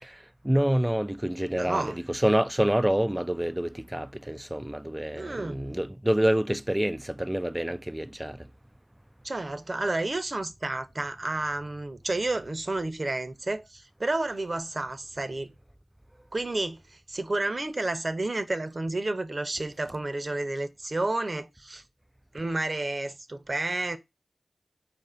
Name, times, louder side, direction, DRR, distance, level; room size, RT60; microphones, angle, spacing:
voice 1, 0.0-8.5, right 1 dB, 10° right, 0.3 m, -27 dB
voice 2, 1.6-2.0 5.2-5.6 9.2-15.5 16.3-21.8 22.3-24.0, right 2 dB, 45° right, 0.7 m, -31 dB
4.4 x 2.6 x 4.3 m
cardioid pair, 40°, 0 cm